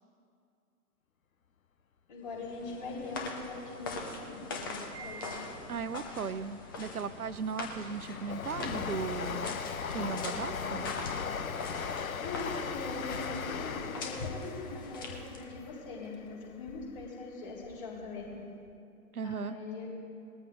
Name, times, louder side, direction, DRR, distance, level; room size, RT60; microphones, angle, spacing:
voice 1, 2.1-5.3 12.2-18.2 19.2-19.9, left 3 dB, 35° left, -3 dB, 3.8 m, -41 dB
sound 1, 2.3-15.6, left 3 dB, 15° left, 0.6 m, -42 dB
Wind chime, 4.9-6.3, right 4 dB, 25° right, 0.7 m, -49 dB
voice 2, 5.7-9.6 9.9-10.9 19.1-19.6, right 5 dB, 75° right, 13 dB, 0.7 m, -37 dB
Train, 6.9-17.1 17.5-18.4 18.7-18.8, left 6 dB, 65° left, 0.8 m, -38 dB
20.0 x 13.5 x 2.6 m, 2.5 s
figure-of-eight pair, 130°, 44 cm